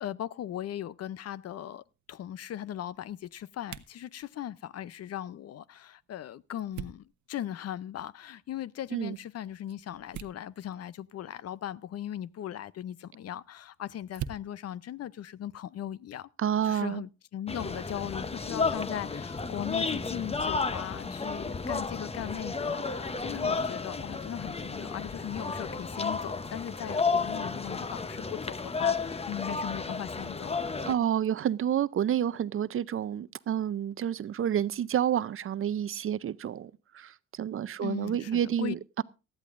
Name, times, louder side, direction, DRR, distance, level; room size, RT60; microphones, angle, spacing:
voice 1, 0.0-16.3 16.6-30.7 37.8-38.8, left 11 dB, 55° left, 0.6 m, -38 dB
sound 1, 1.2-16.0, right 10 dB, 70° right, 0.8 m, -49 dB
voice 2, 16.4-17.0 30.9-39.0, right 10 dB, 45° right, 0.5 m, -29 dB
sound 2, 17.5-30.9, left 4 dB, 20° left, 0.8 m, -32 dB
18.5 x 13.0 x 2.5 m
cardioid pair, 90°, 30 cm